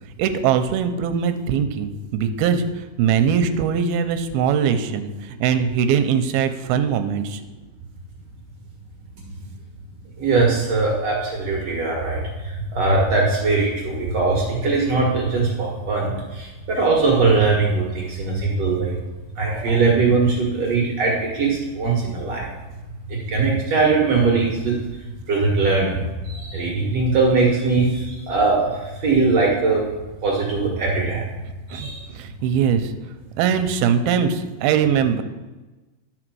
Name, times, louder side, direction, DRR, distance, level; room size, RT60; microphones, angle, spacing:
voice 1, 0.2-2.7 3.0-7.4 31.7-31.9 32.2-32.9 33.4-35.2, right 7 dB, 85° right, 8 dB, 2.6 m, -21 dB
voice 2, 10.2-19.0 19.4-22.5 23.1-24.7 25.3-29.8 30.2-31.3 31.7-32.1, right 3 dB, 55° right, -3 dB, 2.0 m, -21 dB
11.5 x 5.0 x 6.2 m, 1.2 s
omnidirectional pair, 4.4 m